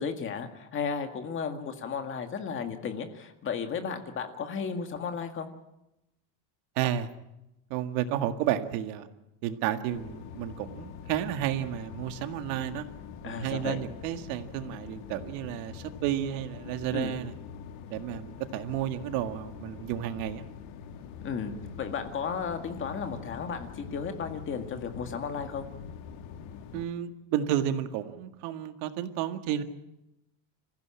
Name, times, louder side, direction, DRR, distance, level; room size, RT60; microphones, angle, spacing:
voice 1, 0.0-5.5 13.2-13.8 16.9-17.1 21.2-25.7, left 6 dB, 25° left, 6 dB, 1.9 m, -34 dB
voice 2, 6.8-7.1 7.7-9.1 9.4-12.9 13.2-17.3 17.9-20.5 26.7-29.6, right 11 dB, 80° right, 8 dB, 2.0 m, -31 dB
sound 1, 9.9-26.8, left 7 dB, 85° left, 2.2 m, -44 dB
26.0 x 15.5 x 8.8 m, 0.93 s
cardioid pair, 180°, 46 cm